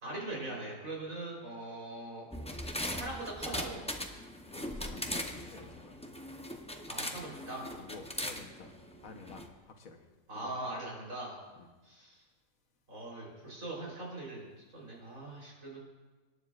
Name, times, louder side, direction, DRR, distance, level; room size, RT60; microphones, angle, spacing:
voice 1, 0.0-2.3 2.9-3.8 6.9-7.7 10.3-11.4 11.8-12.2 12.9-14.4 14.7-15.8, right 2 dB, 75° right, -3 dB, 4.3 m, -41 dB
sound 1, 2.3-9.5, left 1 dB, 5° left, 0.5 m, -40 dB
voice 2, 4.2-6.0 7.7-8.7 9.0-10.0 10.3-10.6 11.6-11.7, left 4 dB, 80° left, 4 dB, 1.5 m, -51 dB
25.5 x 9.6 x 2.5 m, 1.3 s
omnidirectional pair, 1.4 m